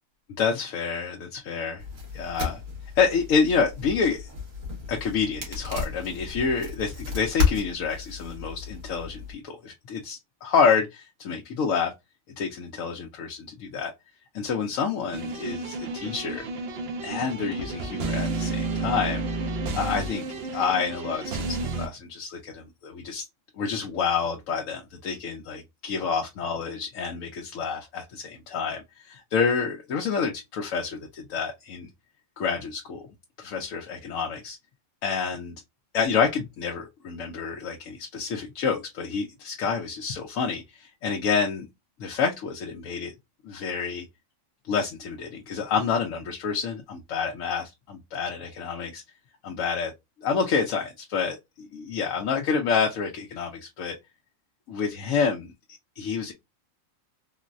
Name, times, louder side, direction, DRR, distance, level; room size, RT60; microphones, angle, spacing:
voice 1, 0.4-1.8 2.1-2.6 3.0-4.3 4.9-11.9 12.4-13.9 14.3-16.4 17.0-19.3 19.7-20.2 20.5-23.3 23.6-31.9 32.4-33.0 33.4-34.6 35.0-35.5 35.9-41.7 42.0-43.1 43.4-44.1 44.7-49.0 49.4-49.9 50.2-53.9 54.7-55.5 56.0-56.3, left 5 dB, 80° left, 1.0 m, -28 dB
sound 1, 1.8-9.3, left 4 dB, 80° right, 1.8 m, -32 dB
sound 2, 15.1-21.9, right 3 dB, 60° right, 0.8 m, -31 dB
3.8 x 2.1 x 2.4 m
omnidirectional pair, 1.4 m